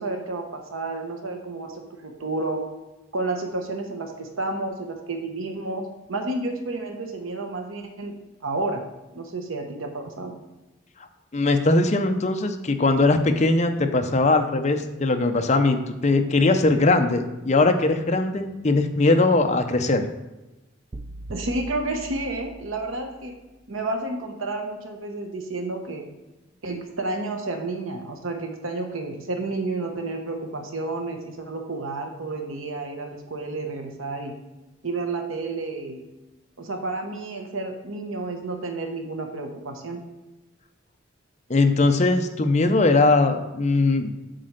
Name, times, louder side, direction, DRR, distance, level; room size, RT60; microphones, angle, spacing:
voice 1, 0.0-2.6 3.1-8.8 9.1-10.3 21.3-23.3 23.7-26.1 26.6-34.4 34.8-36.0 36.6-40.0, right 2 dB, 80° right, 4 dB, 1.0 m, -31 dB
voice 2, 11.3-20.1 41.5-44.1, left 2 dB, 35° left, 7 dB, 0.6 m, -20 dB
sound 1, 20.9-23.2, right 1 dB, 25° right, 0.3 m, -40 dB
7.7 x 4.3 x 6.5 m, 1.0 s
head